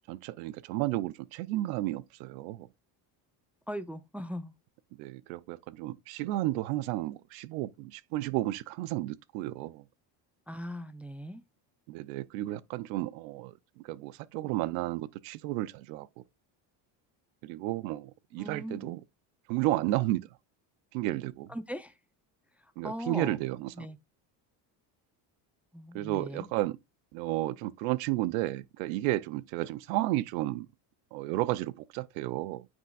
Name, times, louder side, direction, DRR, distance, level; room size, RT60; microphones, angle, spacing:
voice 1, 0.1-2.7 5.0-9.8 11.9-13.5 13.8-16.2 17.4-19.0 19.5-20.3 20.9-21.5 22.8-23.9 25.9-26.8 27.1-30.7 31.1-32.7, right 16 dB, 85° right, 0.7 m, -32 dB
voice 2, 3.7-4.5 10.5-11.4 18.3-18.9 21.5-22.0 22.6-23.4 23.8-24.0 25.7-26.5, equal, 5° right, 0.6 m, -39 dB
9.3 x 6.0 x 2.4 m
supercardioid pair, 80°, 50 cm